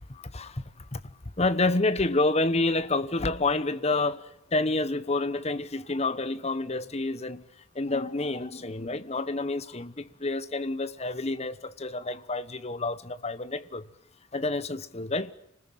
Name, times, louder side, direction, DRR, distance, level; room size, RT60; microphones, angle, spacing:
voice 1, 1.4-4.2 4.5-7.4 7.8-13.8 14.3-15.3, left 2 dB, 30° left, 1.1 m, -28 dB
27.0 x 20.0 x 9.2 m
head